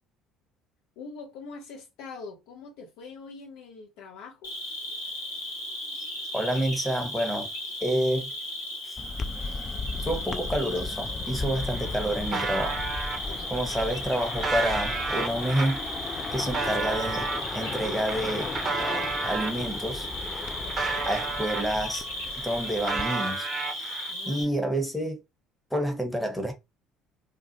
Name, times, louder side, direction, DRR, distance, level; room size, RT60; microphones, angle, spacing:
voice 1, 1.0-4.6 13.3-13.8 20.6-21.1 24.1-24.6, left 4 dB, 65° left, 0.8 m, -44 dB
Cricket, 4.4-24.4, left 1 dB, 80° left, 1.4 m, -36 dB
voice 2, 6.3-7.5 7.8-8.3 8.9-9.0 10.0-12.8 13.5-15.8 16.3-18.5 19.2-20.1 21.0-22.0 22.4-23.5 23.8-23.9 24.3-25.2 25.7-26.5, right 1 dB, 5° left, 1.0 m, -28 dB
sound 1, 9.0-23.1, left 4 dB, 30° left, 0.4 m, -36 dB
sound 2, 11.3-11.4 11.6-13.2 13.8-19.6 20.1-22.0 22.3-24.1, right 4 dB, 40° right, 0.6 m, -33 dB
2.4 x 2.2 x 2.7 m
figure-of-eight pair, 55°, 0 cm